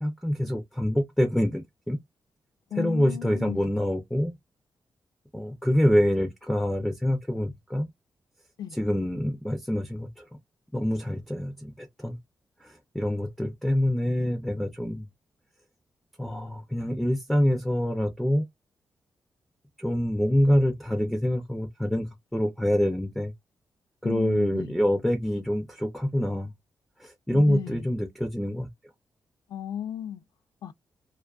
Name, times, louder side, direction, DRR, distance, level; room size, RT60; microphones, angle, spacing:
voice 1, 0.0-2.0 2.8-4.3 5.3-7.9 8.7-10.4 10.7-12.2 12.6-15.1 16.2-18.4 19.8-23.3 24.0-26.5 27.0-28.7, equal, 5° left, 0.4 m, -26 dB
voice 2, 2.7-3.7 8.6-8.8 24.0-24.8 27.3-27.9 29.5-30.2 30.6-30.7, left 9 dB, 75° left, 0.4 m, -35 dB
2.4 x 2.3 x 2.3 m
wide cardioid pair, 150°, 7 cm